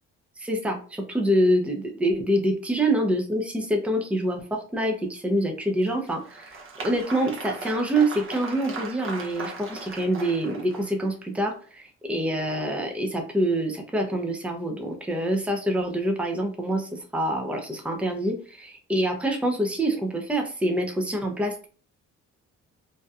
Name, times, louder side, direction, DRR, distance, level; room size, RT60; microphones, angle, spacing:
voice 1, 0.4-21.7, right 1 dB, 5° right, 2 dB, 0.5 m, -26 dB
Applause, 5.8-11.1, right 3 dB, 45° right, 0.8 m, -38 dB
2.7 x 2.1 x 2.3 m, 0.40 s
cardioid pair, 90°, 30 cm